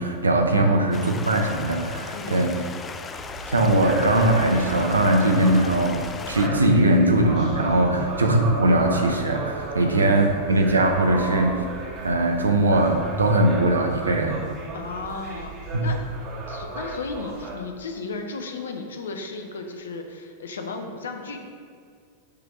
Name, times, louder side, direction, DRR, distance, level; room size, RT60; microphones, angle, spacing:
voice 1, 0.0-2.5 3.5-11.5 12.0-14.4 15.7-15.8, right 1 dB, 75° right, 3 dB, 0.7 m, -20 dB
Stream, 0.9-6.5, left 5 dB, 20° left, 0.4 m, -37 dB
sound 1, 3.1-17.5, right 2 dB, 35° right, 1.5 m, -35 dB
voice 2, 9.8-10.5 14.7-16.0 16.5-21.4, left 4 dB, 65° left, 5 dB, 0.6 m, -35 dB
6.9 x 3.4 x 5.7 m, 2.1 s
figure-of-eight pair, 90°, 0 cm